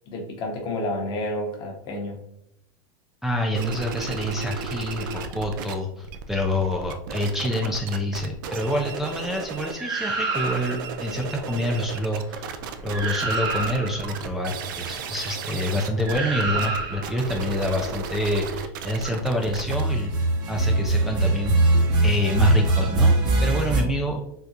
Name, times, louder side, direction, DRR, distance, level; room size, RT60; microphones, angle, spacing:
voice 1, 0.1-2.2, left 1 dB, 40° left, 2 dB, 0.9 m, -30 dB
voice 2, 3.2-20.1 20.5-23.1 23.4-24.2, left 1 dB, 5° right, -1 dB, 0.3 m, -27 dB
sound 1, 3.5-5.7 6.0-9.8 10.2-21.8, right 5 dB, 70° right, 0.4 m, -35 dB
sound 2, 9.8-10.9 12.6-12.7 12.9-14.1 16.0-17.2 19.5-23.8, right 2 dB, 35° right, 0.8 m, -23 dB
3.6 x 2.3 x 2.7 m, 0.81 s
hypercardioid pair, 115°, 12 cm